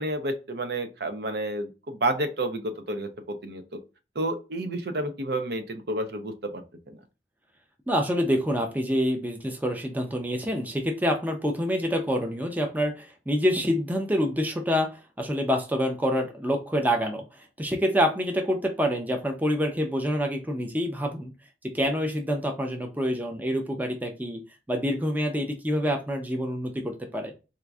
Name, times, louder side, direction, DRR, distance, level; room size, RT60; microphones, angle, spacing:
voice 1, 0.0-3.6 4.1-7.0, right 1 dB, 60° right, 7 dB, 0.6 m, -30 dB
voice 2, 7.9-17.2 17.6-21.3 21.6-24.4 24.7-27.3, equal, 10° right, 3 dB, 0.5 m, -27 dB
4.3 x 2.5 x 2.3 m, 0.30 s
head